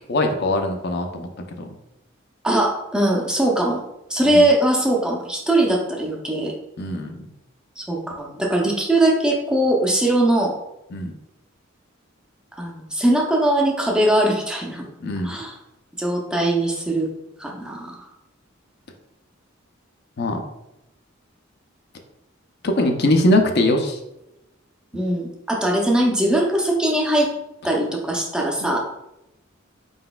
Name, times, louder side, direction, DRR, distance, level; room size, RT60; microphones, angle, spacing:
voice 1, 0.1-1.3 1.6-1.7 4.2-4.5 6.8-7.2 10.9-11.1 15.0-15.3 20.2-20.4 22.6-24.0 28.6-28.7, left 1 dB, 55° left, 4 dB, 0.5 m, -21 dB
voice 2, 2.4-3.8 4.1-6.5 7.8-10.5 12.6-14.9 15.2-15.5 16.0-17.1 17.4-18.1 24.9-27.3 27.6-28.8, right 1 dB, 5° right, -1 dB, 0.5 m, -21 dB
4.3 x 3.9 x 2.3 m, 0.90 s
head